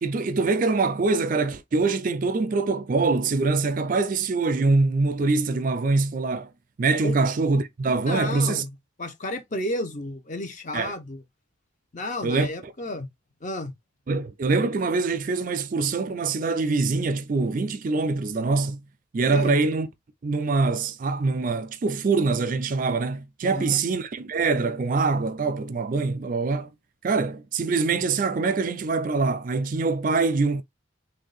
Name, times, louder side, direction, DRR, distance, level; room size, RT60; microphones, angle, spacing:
voice 1, 0.0-6.5 6.8-8.6 10.7-10.9 12.2-12.7 14.1-18.8 19.1-19.9 20.2-26.7 27.0-30.6, right 3 dB, 40° right, 0.4 m, -24 dB
voice 2, 8.1-8.7 9.0-11.2 11.9-13.1 13.4-13.7 19.3-19.6 23.4-23.8, left 1 dB, 40° left, 0.7 m, -32 dB
3.3 x 2.6 x 3.9 m
head